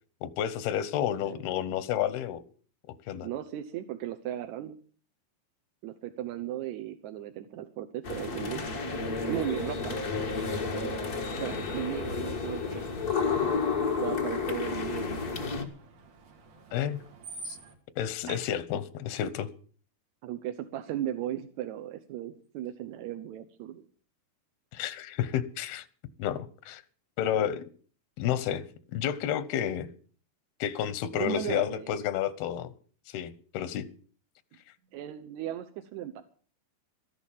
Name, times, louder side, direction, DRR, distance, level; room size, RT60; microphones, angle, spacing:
voice 1, 0.2-2.4 3.1-3.3 16.7-17.0 17.5-17.6 18.0-19.5 24.7-25.9 26.2-26.8 27.2-27.6 28.2-28.6 28.9-29.9 30.6-32.7 33.1-33.9, left 10 dB, 90° left, 16 dB, 2.9 m, -30 dB
voice 2, 3.2-4.8 5.8-8.8 9.3-10.0 10.7-10.9 11.4-12.9 14.0-15.5 18.3-18.4 20.2-23.9 31.2-32.0 34.9-36.2, right 12 dB, 75° right, 8 dB, 1.8 m, -36 dB
sound 1, 8.0-15.6, left 4 dB, 45° left, 1.2 m, -31 dB
Screech, 8.4-17.8, right 2 dB, 60° right, 3.9 m, -51 dB
13.5 x 11.0 x 7.3 m, 0.43 s
omnidirectional pair, 4.3 m